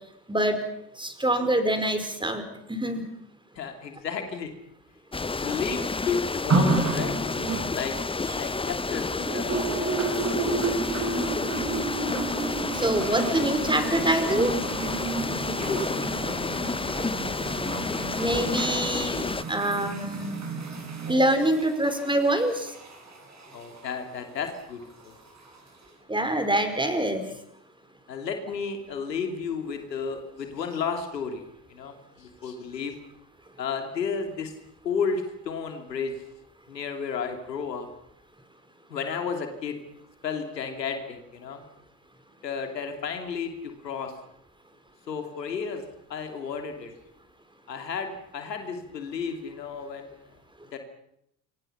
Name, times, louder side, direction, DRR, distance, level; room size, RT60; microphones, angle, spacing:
voice 1, 0.3-0.6 1.0-2.4 2.7-3.0 12.7-14.5 18.2-20.4 21.1-22.7 26.1-27.3, right 1 dB, 10° right, 8 dB, 5.0 m, -25 dB
voice 2, 3.5-4.5 5.3-10.5 15.5-16.1 23.5-25.1 28.1-31.4 31.7-32.9 33.6-34.5 34.8-36.1 36.7-37.9 38.9-39.8 40.2-41.6 42.4-43.5 43.8-44.1 45.1-45.8 46.1-46.9 47.7-50.2 50.7-50.8, left 5 dB, 90° left, 5 dB, 2.9 m, -33 dB
sound 1, 5.1-19.4, left 3 dB, 10° left, 0.8 m, -30 dB
sound 2, 6.5-8.9 9.2-23.9 24.8-24.9, right 3 dB, 35° right, 7.3 m, -31 dB
27.0 x 24.0 x 5.8 m, 0.77 s
hypercardioid pair, 60°, 48 cm